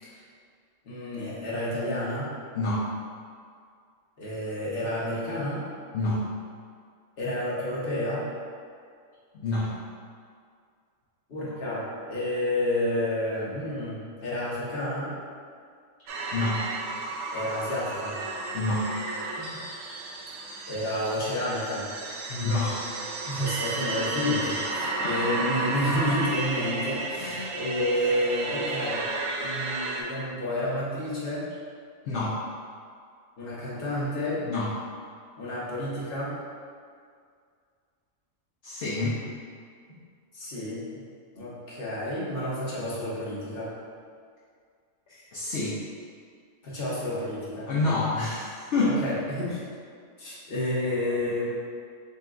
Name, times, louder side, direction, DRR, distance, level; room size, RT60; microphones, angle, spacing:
voice 1, 0.8-2.3 4.2-5.7 7.2-8.3 11.3-15.1 17.3-18.2 19.4-19.6 20.7-21.9 23.3-29.1 29.4-31.5 33.4-34.4 35.4-36.3 39.9-40.0 40.3-40.8 41.3-43.7 46.6-47.7 48.8-49.6 50.2-51.5, left 1 dB, 45° left, -7 dB, 1.1 m, -30 dB
voice 2, 2.5-2.9 5.9-6.2 9.3-9.7 16.3-16.7 18.5-18.9 22.3-22.8 25.0-25.2 27.2-27.5 32.1-32.4 34.4-34.7 38.6-39.2 45.1-45.8 47.7-49.0, left 2 dB, 65° left, -6 dB, 0.8 m, -27 dB
sound 1, 16.1-30.0, right 2 dB, 65° right, 0.8 m, -33 dB
6.7 x 2.3 x 2.5 m, 2.1 s
omnidirectional pair, 1.4 m